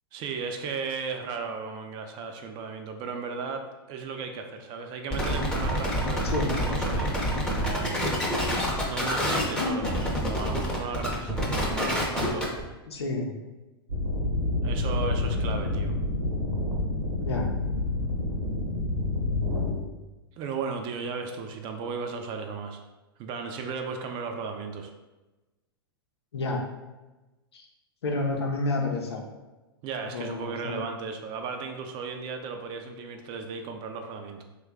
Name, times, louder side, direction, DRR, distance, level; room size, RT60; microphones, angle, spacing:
voice 1, 0.1-8.0 8.8-12.6 14.6-15.9 20.4-22.8 23.2-24.9 29.8-34.4, right 5 dB, 35° right, 5 dB, 0.4 m, -35 dB
sound 1, 5.1-12.6, equal, 5° left, 0.7 m, -27 dB
voice 2, 12.9-13.3 17.2-17.5 26.3-26.6 27.5-27.6 28.0-29.2 30.0-30.8, left 2 dB, 85° left, 1 dB, 0.7 m, -30 dB
sound 2, 13.9-19.7, left 2 dB, 85° right, 0.9 m, -28 dB
3.0 x 2.3 x 3.5 m, 1.1 s
hypercardioid pair, 110°, 13 cm